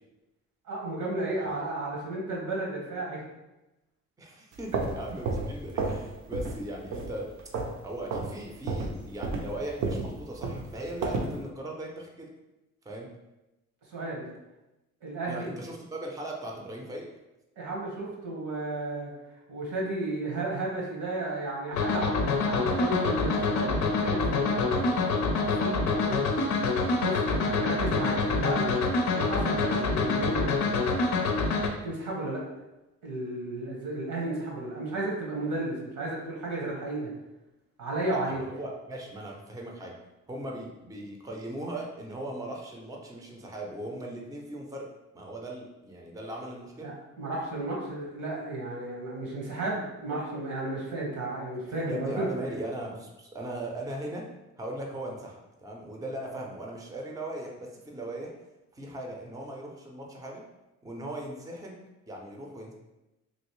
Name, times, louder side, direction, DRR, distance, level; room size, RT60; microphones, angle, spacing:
voice 1, 0.6-3.2 13.9-14.3 15.0-15.5 17.6-19.1 19.5-24.9 25.4-26.6 27.0-28.7 29.1-30.7 31.8-32.4 33.0-37.1 37.8-38.4 46.8-52.5, right 2 dB, 90° right, -3 dB, 1.2 m, -33 dB
voice 2, 4.2-7.3 7.8-12.3 12.8-13.1 15.3-17.1 29.6-29.8 38.1-40.0 40.3-44.9 45.1-46.9 51.9-54.3 54.6-58.3 58.8-60.4 60.8-61.8 62.1-62.7, right 1 dB, 10° right, 0 dB, 0.5 m, -38 dB
sound 1, 4.5-6.1 6.3-6.6 6.9-7.8 8.1-8.3 8.7-11.4, right 3 dB, 70° right, 0.6 m, -31 dB
sound 2, 21.7-31.7, left 3 dB, 70° left, 0.5 m, -26 dB
3.1 x 2.5 x 3.0 m, 0.99 s
cardioid pair, 90°, 30 cm